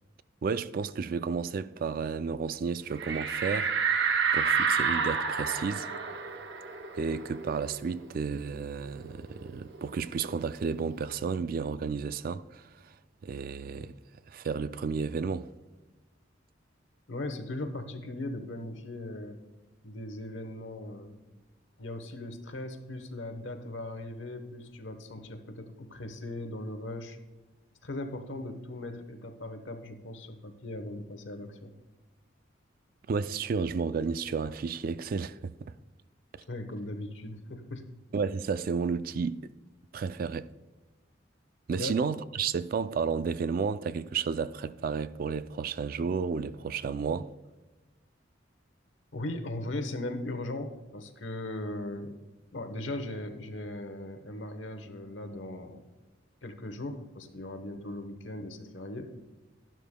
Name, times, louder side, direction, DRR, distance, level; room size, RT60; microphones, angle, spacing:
voice 1, 0.4-4.1 4.3-5.9 7.0-12.9 13.2-13.9 14.3-15.5 33.1-35.5 38.1-39.4 39.9-40.5 41.7-47.3, right 5 dB, 50° right, 0.3 m, -32 dB
sound 1, 3.0-8.2 8.5-8.6 9.0-10.6, right 6 dB, 65° right, 0.8 m, -30 dB
voice 2, 17.1-19.4 19.8-21.2 21.8-27.2 27.8-31.7 36.5-37.8 41.8-41.9 49.1-52.2 52.5-55.8 56.4-59.1, left 1 dB, 85° left, 1.0 m, -38 dB
12.0 x 11.0 x 2.2 m
head